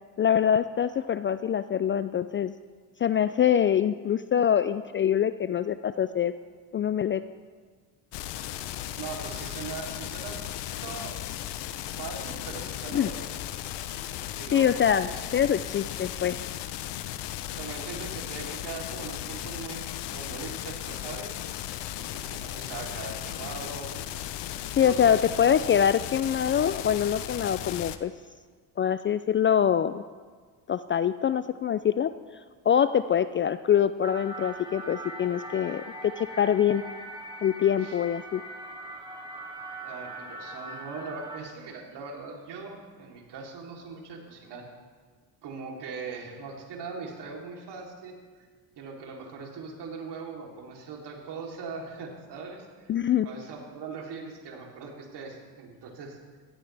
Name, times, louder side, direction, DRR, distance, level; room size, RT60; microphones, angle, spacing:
voice 1, 0.2-2.5 3.0-6.3 6.7-7.2 12.9-13.1 14.5-15.1 15.3-16.4 24.8-28.1 28.8-30.0 30.7-32.1 32.7-36.8 37.4-38.4 52.9-53.3, left 9 dB, 30° left, 13 dB, 0.4 m, -24 dB
sound 1, 8.1-28.0, left 12 dB, 60° left, 1.0 m, -36 dB
voice 2, 8.9-11.2 12.0-13.3 14.4-15.2 17.6-21.4 22.0-23.9 24.8-25.5 37.8-38.0 39.8-44.7 45.4-48.5 48.8-52.9 53.2-56.2, right 4 dB, 60° right, 0 dB, 3.5 m, -40 dB
sound 2, 34.0-41.4, right 2 dB, 10° right, 2.6 m, -41 dB
17.0 x 15.0 x 3.4 m, 1.5 s
hypercardioid pair, 70°, 46 cm